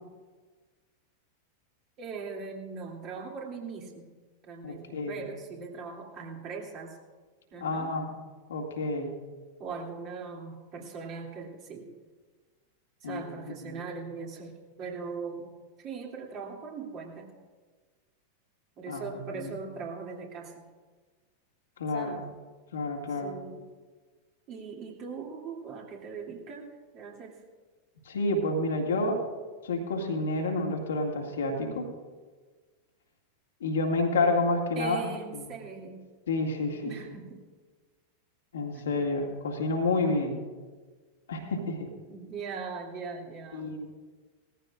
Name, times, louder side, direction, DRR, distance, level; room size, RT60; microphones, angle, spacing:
voice 1, 2.0-4.1 4.4-7.0 7.5-7.9 9.6-11.9 13.0-15.5 15.8-17.3 18.8-20.7 21.9-22.3 23.1-23.7 24.5-27.4 34.7-36.0 36.8-37.4 38.7-38.8 42.1-43.9, right 5 dB, 40° right, -1 dB, 2.7 m, -40 dB
voice 2, 4.6-5.2 7.6-8.1 8.5-9.1 13.0-13.2 13.6-13.8 18.9-19.0 19.3-19.5 21.8-22.2 22.7-23.4 28.1-29.2 29.6-31.9 33.6-35.0 35.3-35.4 36.3-36.9 38.5-40.4 41.3-41.9 43.5-43.9, left 2 dB, 65° left, 1 dB, 2.1 m, -29 dB
19.5 x 14.5 x 2.5 m, 1.4 s
figure-of-eight pair, 90°, 0 cm